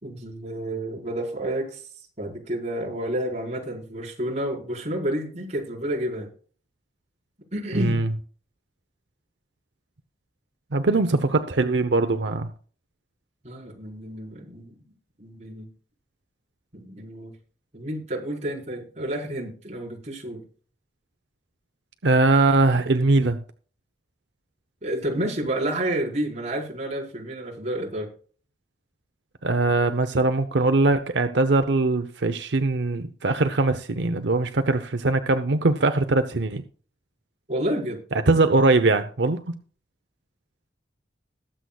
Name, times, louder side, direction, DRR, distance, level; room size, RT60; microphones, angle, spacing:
voice 1, 0.0-1.9 2.2-6.3 7.5-8.1 10.9-11.3 13.4-14.7 15.2-15.7 16.7-17.3 17.7-20.4 24.8-28.1 37.5-38.0, right 1 dB, 40° right, 4.7 m, -30 dB
voice 2, 7.7-8.1 10.7-12.5 22.0-23.4 29.4-36.6 38.3-39.6, right 3 dB, 85° right, 0.8 m, -21 dB
21.0 x 7.8 x 2.4 m
head